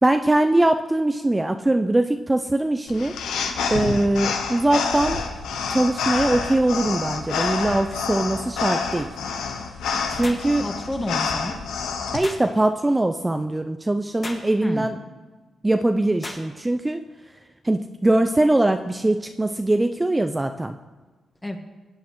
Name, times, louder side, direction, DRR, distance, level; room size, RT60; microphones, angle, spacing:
voice 1, 0.0-3.1 3.7-5.2 5.7-9.1 10.1-10.6 12.1-15.0 15.6-17.0 17.6-20.8, right 1 dB, 20° right, 6 dB, 0.5 m, -21 dB
sound 1, 2.9-12.2, left 5 dB, 85° left, 0.9 m, -28 dB
sound 2, 10.2-10.5 12.2-12.5 14.2-14.5 16.2-16.5, left 2 dB, 45° left, 1.8 m, -35 dB
voice 2, 10.3-11.5 14.6-14.9 21.4-21.6, left 1 dB, 20° left, 5 dB, 1.5 m, -30 dB
16.0 x 8.3 x 3.1 m, 1.3 s
supercardioid pair, 55°, 0 cm